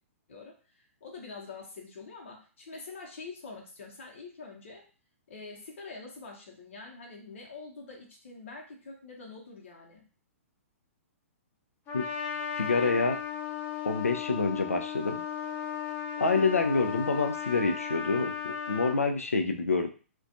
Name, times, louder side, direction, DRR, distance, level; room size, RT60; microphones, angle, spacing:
voice 1, 0.3-4.8 5.3-10.1, left 4 dB, 65° left, -1 dB, 0.8 m, -45 dB
Trumpet, 11.9-19.0, left 8 dB, 25° left, 0.6 m, -36 dB
voice 2, 12.6-13.2 13.8-15.2 16.2-19.9, left 4 dB, 85° left, 6 dB, 0.4 m, -27 dB
2.4 x 2.2 x 2.6 m, 0.38 s
figure-of-eight pair, 115°, 8 cm